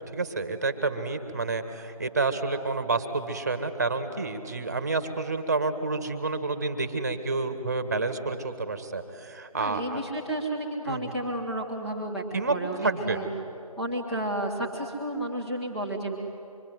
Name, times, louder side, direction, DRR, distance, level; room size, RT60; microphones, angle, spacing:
voice 1, 0.1-10.0 10.9-11.1 12.3-12.5 12.8-13.2, right 3 dB, 25° right, 10 dB, 1.6 m, -29 dB
voice 2, 9.5-13.3 13.8-16.2, right 1 dB, ahead, -6 dB, 1.3 m, -32 dB
25.5 x 23.5 x 9.4 m, 2.6 s
figure-of-eight pair, 165°, 19 cm